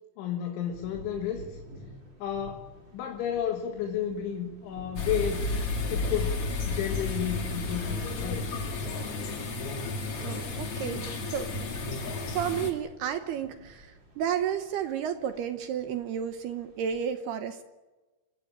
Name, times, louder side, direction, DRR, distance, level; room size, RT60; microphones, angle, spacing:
voice 1, 0.2-1.6 2.2-2.7 2.9-5.4 5.9-8.6, left 9 dB, 75° left, 3 dB, 4.1 m, -32 dB
sound 1, 0.7-17.0, equal, 25° right, 3.9 m, -52 dB
sound 2, 5.0-12.7, left 3 dB, 40° left, 2.6 m, -32 dB
voice 2, 10.2-11.5 12.3-17.6, right 8 dB, 70° right, 8 dB, 2.7 m, -32 dB
26.5 x 16.5 x 8.9 m, 1.2 s
omnidirectional pair, 5.6 m